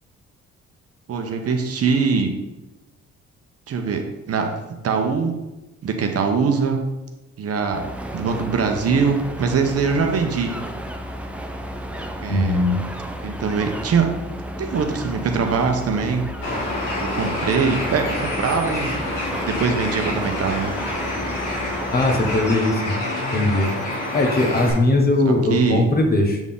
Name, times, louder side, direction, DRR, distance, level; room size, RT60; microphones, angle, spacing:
voice 1, 1.1-2.3 3.7-4.6 4.8-5.3 5.8-6.8 7.4-7.8 8.1-10.5 12.2-12.7 13.2-14.1 14.6-16.2 17.0-18.9 19.5-20.7 25.2-25.9, right 5 dB, 55° right, 4 dB, 0.9 m, -22 dB
sound 1, 7.7-22.6, equal, 5° right, 0.6 m, -33 dB
voice 2, 12.3-12.8 21.9-22.9 23.3-23.7 24.1-26.4, left 2 dB, 30° left, 3 dB, 1.2 m, -19 dB
Bird, 16.4-24.7, left 1 dB, 90° left, 1.9 m, -27 dB
7.2 x 4.0 x 3.7 m, 1.0 s
cardioid pair, 90°, 30 cm